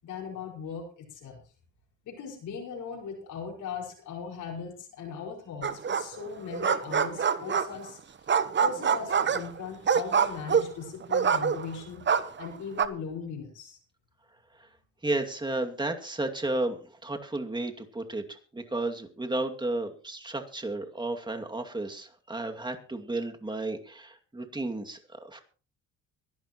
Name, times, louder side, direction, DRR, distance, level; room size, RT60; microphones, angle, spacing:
voice 1, 0.0-1.4 2.0-8.0 8.6-12.1 12.4-13.8, left 6 dB, 85° left, -1 dB, 5.4 m, -39 dB
sound 1, 5.6-6.2 6.5-7.9 8.3-11.8 12.1-12.9, right 6 dB, 40° right, 1.0 m, -25 dB
voice 2, 15.0-25.4, right 2 dB, 15° right, 4 dB, 2.4 m, -33 dB
23.5 x 12.0 x 3.0 m, 0.37 s
cardioid pair, 90°, 30 cm